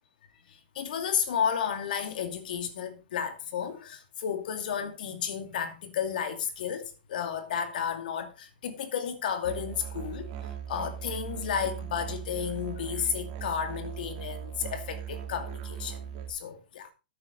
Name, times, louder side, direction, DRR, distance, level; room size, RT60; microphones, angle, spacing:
voice 1, 0.5-10.3 10.7-16.0 16.3-16.9, left 8 dB, 65° left, 2.4 m, -32 dB
Musical instrument, 9.4-16.3, right 9 dB, 50° right, 2.2 m, -39 dB
12.0 x 9.1 x 4.0 m
hypercardioid pair, 110°, 5 cm